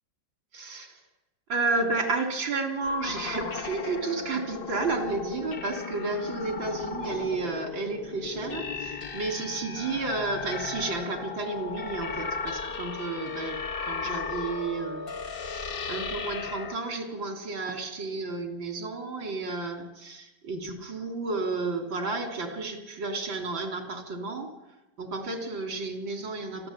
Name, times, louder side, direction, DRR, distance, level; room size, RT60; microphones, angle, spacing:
voice 1, 0.5-1.0 1.5-15.4 15.9-24.5 25.0-26.7, right 3 dB, 80° right, 5 dB, 4.0 m, -32 dB
sound 1, 2.8-16.8, left 5 dB, 40° left, 0.8 m, -36 dB
28.5 x 12.0 x 8.7 m, 1.0 s
omnidirectional pair, 2.1 m